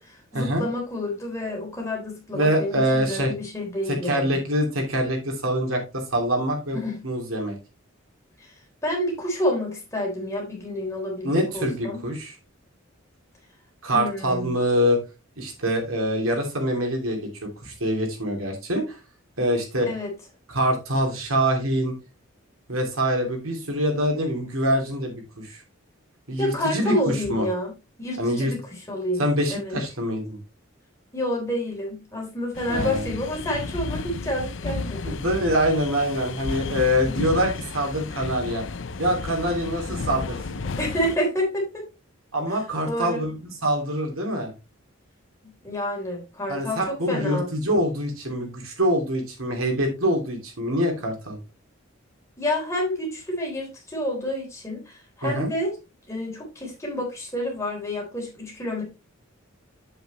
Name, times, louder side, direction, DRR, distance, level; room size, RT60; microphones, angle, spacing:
voice 1, 0.0-4.4 6.7-7.0 8.4-8.5 8.8-12.0 13.9-14.6 19.9-20.1 26.4-27.7 28.0-29.2 29.5-29.7 31.1-35.2 40.8-41.9 42.5-42.6 42.9-43.2 45.6-47.5 52.4-55.8 56.1-58.8, left 1 dB, 15° left, -1 dB, 3.6 m, -29 dB
voice 2, 2.3-3.3 3.9-7.6 11.2-12.3 13.8-15.0 15.4-19.0 19.4-19.9 20.5-21.9 22.7-25.6 26.3-27.5 28.2-28.5 29.2-30.4 32.7-33.1 35.0-38.6 39.0-40.6 42.3-44.5 46.5-51.4 55.2-55.5, equal, 85° right, 2 dB, 3.0 m, -25 dB
sound 1, 32.5-41.2, left 4 dB, 60° left, 0.6 m, -32 dB
7.9 x 7.7 x 3.1 m, 0.27 s
head